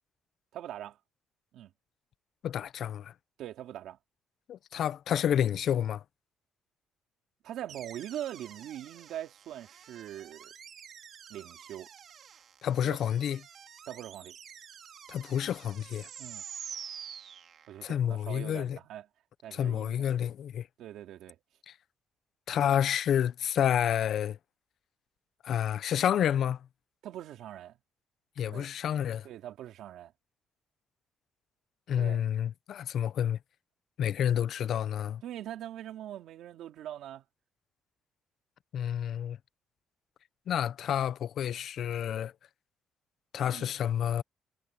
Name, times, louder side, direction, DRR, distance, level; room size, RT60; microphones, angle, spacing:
voice 1, 0.5-1.0 1.5-1.7 3.4-4.0 7.4-10.5 11.3-11.9 12.8-13.0 13.9-14.4 16.2-16.4 17.7-19.1 19.4-20.0 20.8-21.4 27.0-27.8 28.5-28.7 29.2-30.1 32.0-32.2 35.2-37.2 43.4-43.7, right 12 dB, 75° right, 2.5 m, -42 dB
voice 2, 2.4-3.1 4.5-6.0 12.6-13.4 15.1-16.1 17.8-18.8 19.5-20.7 22.5-24.4 25.4-26.6 28.4-29.3 31.9-33.4 34.0-35.2 38.7-39.4 40.5-42.3 43.3-44.2, left 9 dB, 60° left, 0.6 m, -29 dB
sound 1, 7.7-18.0, right 8 dB, 50° right, 2.8 m, -48 dB
cardioid pair, 140°, 0 cm